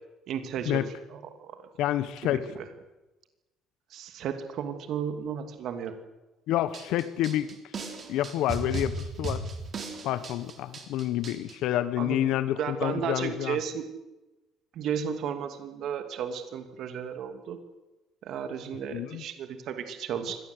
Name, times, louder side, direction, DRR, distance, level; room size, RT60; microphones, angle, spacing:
voice 1, 0.3-0.8 1.1-1.6 2.2-2.7 3.9-6.0 12.0-12.3 12.6-13.8 14.7-17.6 18.2-20.4, right 8 dB, 55° right, 8 dB, 2.6 m, -34 dB
voice 2, 1.8-2.5 6.5-7.5 8.1-9.4 10.0-13.6 18.9-19.2, left 13 dB, 70° left, 14 dB, 1.3 m, -28 dB
sound 1, 6.7-11.5, right 2 dB, 30° right, 3.7 m, -36 dB
24.0 x 18.5 x 8.0 m, 1.1 s
cardioid pair, 170°, 0 cm